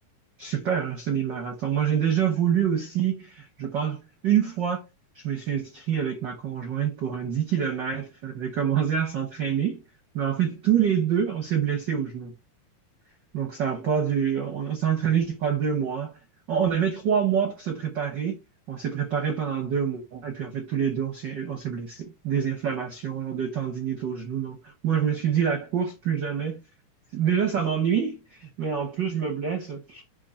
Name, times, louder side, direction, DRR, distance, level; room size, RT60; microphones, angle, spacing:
voice 1, 0.4-4.8 5.1-9.8 10.1-12.3 13.3-16.1 16.5-18.4 18.7-26.6 27.1-30.0, right 8 dB, 75° right, 1.0 m, -26 dB
7.5 x 2.9 x 5.6 m
omnidirectional pair, 3.7 m